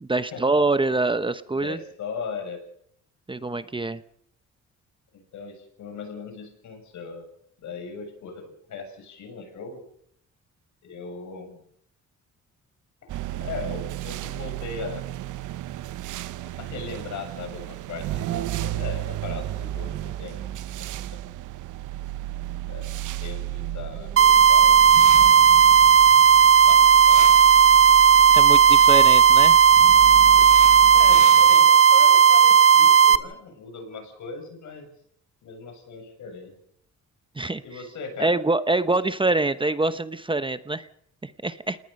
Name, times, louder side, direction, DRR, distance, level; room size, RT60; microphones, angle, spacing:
voice 1, 0.0-1.8 3.3-4.0 28.3-29.6 37.4-37.6 38.2-40.9 41.2-41.8, right 2 dB, 15° right, 12 dB, 0.9 m, -25 dB
voice 2, 1.5-2.6 5.1-7.3 7.6-9.8 10.8-11.6 13.0-15.1 16.6-20.9 22.7-22.9 23.2-24.1 24.5-24.8 26.7-26.8 27.1-27.3 30.9-34.9 35.4-36.5 37.6-38.3, left 5 dB, 70° left, 6 dB, 7.0 m, -38 dB
sound 1, 13.1-31.6, right 13 dB, 80° right, 1.0 m, -33 dB
sound 2, 24.2-33.2, right 7 dB, 45° right, 1.1 m, -14 dB
28.5 x 19.0 x 5.4 m, 0.70 s
cardioid pair, 90°, 30 cm